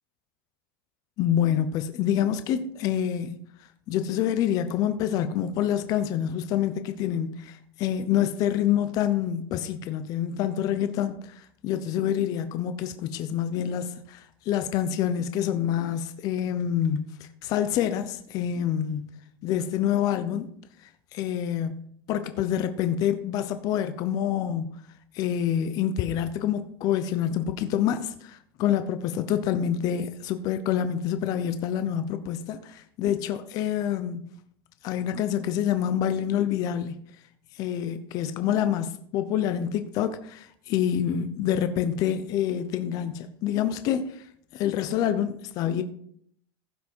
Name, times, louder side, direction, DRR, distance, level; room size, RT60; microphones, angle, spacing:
voice 1, 1.2-3.4 3.9-19.1 19.4-20.5 20.8-24.7 25.1-34.3 34.8-36.9 37.5-45.8, left 10 dB, 30° left, 0.7 m, -27 dB
15.0 x 6.0 x 4.5 m
supercardioid pair, 165°, 12 cm